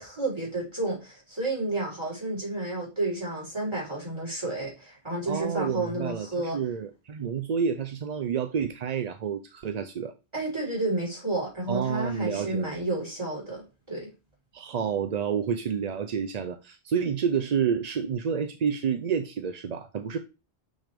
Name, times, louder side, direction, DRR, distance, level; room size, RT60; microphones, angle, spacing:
voice 1, 0.0-6.6 10.3-14.1, right 2 dB, 25° right, 4.3 m, -31 dB
voice 2, 5.3-6.3 6.5-10.1 11.7-12.7 14.5-20.2, right 7 dB, 50° right, 0.5 m, -29 dB
6.6 x 6.3 x 3.5 m
omnidirectional pair, 1.1 m